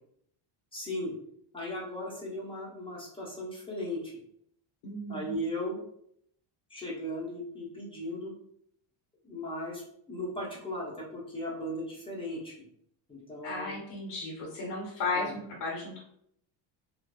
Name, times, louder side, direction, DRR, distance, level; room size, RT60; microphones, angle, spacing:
voice 1, 0.7-1.1 1.5-4.1 5.1-5.8 6.7-8.3 9.2-12.7 13.1-13.7 15.1-15.3, left 1 dB, 10° left, -5 dB, 0.7 m, -37 dB
voice 2, 4.8-5.4 13.4-16.0, left 3 dB, 60° left, -3 dB, 0.9 m, -35 dB
2.9 x 2.0 x 2.2 m, 0.71 s
cardioid pair, 125°, 50 cm